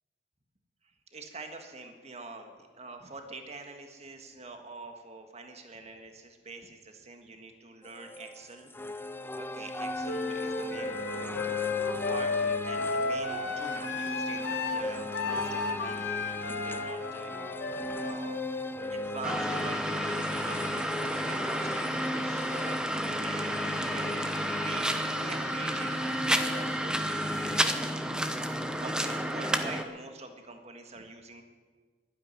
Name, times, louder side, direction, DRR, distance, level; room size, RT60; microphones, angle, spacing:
voice 1, 1.1-8.7 9.3-11.4 11.9-17.3 18.0-18.4 18.9-24.3 24.6-27.7 28.8-31.4, right 3 dB, 35° right, 5 dB, 1.6 m, -45 dB
sound 1, 7.8-27.6, left 1 dB, 10° left, 0.5 m, -38 dB
Wind instrument woodwind instrument, 10.0-19.9, left 4 dB, 65° left, 1.3 m, -34 dB
sound 2, 19.2-29.8, equal, 5° right, 0.9 m, -31 dB
11.5 x 10.0 x 9.7 m, 1.5 s
head